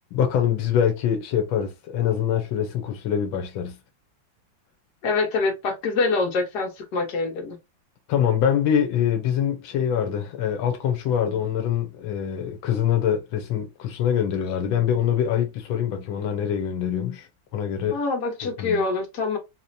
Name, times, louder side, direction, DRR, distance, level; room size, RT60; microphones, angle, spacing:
voice 1, 0.1-3.8 8.1-17.3 17.5-18.0 18.4-18.8, left 9 dB, 85° left, 1.5 m, -24 dB
voice 2, 5.0-7.6 17.9-19.4, left 3 dB, 60° left, 1.6 m, -25 dB
4.0 x 2.8 x 2.6 m
omnidirectional pair, 2.1 m